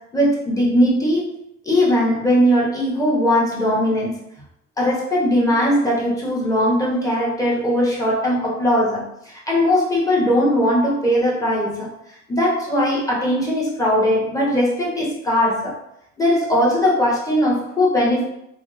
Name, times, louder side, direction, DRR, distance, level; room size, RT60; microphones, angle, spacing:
voice 1, 0.0-1.3 1.6-4.2 4.8-11.9 12.3-15.7 16.2-18.2, equal, 10° left, -5 dB, 1.2 m, -19 dB
3.4 x 2.2 x 3.2 m, 0.81 s
cardioid pair, 90°, 30 cm